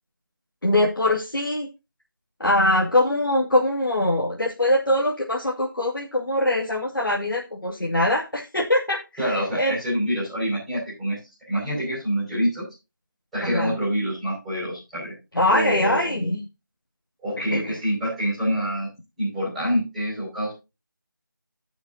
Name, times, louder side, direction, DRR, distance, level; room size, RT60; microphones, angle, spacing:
voice 1, 0.6-1.7 2.4-9.2 9.6-9.7 13.4-13.7 15.3-16.4 17.5-17.8, left 1 dB, 80° left, -2 dB, 2.4 m, -22 dB
voice 2, 9.2-11.2 11.5-12.6 13.3-15.1 15.5-16.1 17.2-18.9 19.2-20.5, equal, ahead, -10 dB, 5.5 m, -26 dB
17.5 x 6.2 x 2.8 m, 0.27 s
figure-of-eight pair, 170°, 11 cm